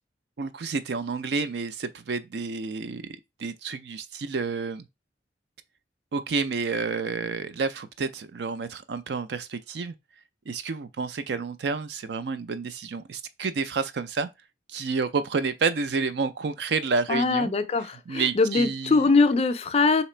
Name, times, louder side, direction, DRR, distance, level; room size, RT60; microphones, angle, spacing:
voice 1, 0.4-3.0 3.4-4.9 6.1-9.9 10.5-14.3 14.7-17.5 18.1-19.1, right 4 dB, 65° right, 0.4 m, -29 dB
voice 2, 17.1-20.0, left 3 dB, 35° left, 0.4 m, -22 dB
3.3 x 2.9 x 4.3 m
head